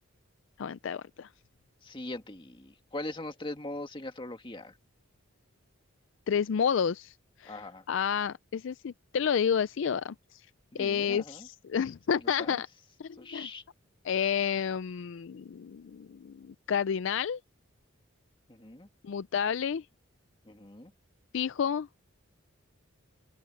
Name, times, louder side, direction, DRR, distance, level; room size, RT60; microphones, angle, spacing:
voice 1, 0.6-1.3 6.3-7.1 7.4-7.6 7.9-10.1 10.7-12.7 13.0-13.5 14.0-17.4 19.0-19.8 21.3-21.9, left 7 dB, 60° left, 0.4 m, -30 dB
voice 2, 1.8-4.7 7.5-7.8 10.7-11.5 12.2-12.6 13.2-13.6 18.5-18.9 20.5-20.9, left 2 dB, 25° left, 1.9 m, -41 dB
open air
head